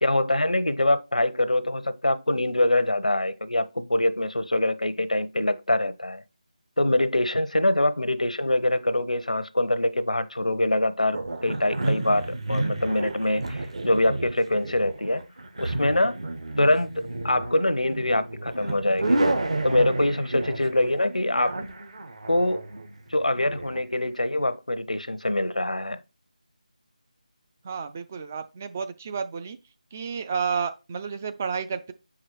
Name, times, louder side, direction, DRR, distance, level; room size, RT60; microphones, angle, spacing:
voice 1, 0.0-6.2 6.8-15.2 15.6-16.2 16.6-19.2 19.6-21.6 22.3-22.6 23.1-26.0, left 1 dB, 80° left, 0.7 m, -24 dB
sound 1, 11.1-23.8, right 2 dB, 55° right, 1.1 m, -31 dB
voice 2, 27.6-29.6 29.9-31.9, right 6 dB, 20° right, 0.3 m, -31 dB
6.0 x 4.9 x 4.5 m
figure-of-eight pair, 160°, 4 cm